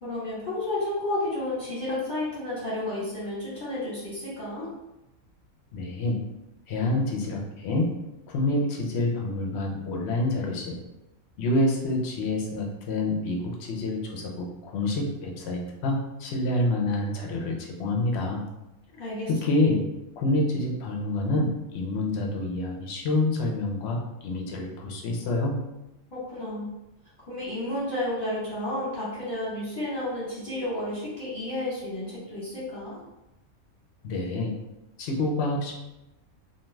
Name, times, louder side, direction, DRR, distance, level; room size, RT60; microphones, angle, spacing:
voice 1, 0.0-4.7 18.9-19.3 26.1-26.7 27.3-33.0, left 1 dB, 35° left, -11 dB, 1.0 m, -31 dB
voice 2, 5.7-6.2 6.7-7.9 8.3-10.8 11.4-18.4 19.0-19.8 20.2-25.6 34.0-34.5 35.0-35.7, left 2 dB, 60° left, 0 dB, 0.7 m, -27 dB
2.5 x 2.3 x 3.1 m, 0.94 s
omnidirectional pair, 1.5 m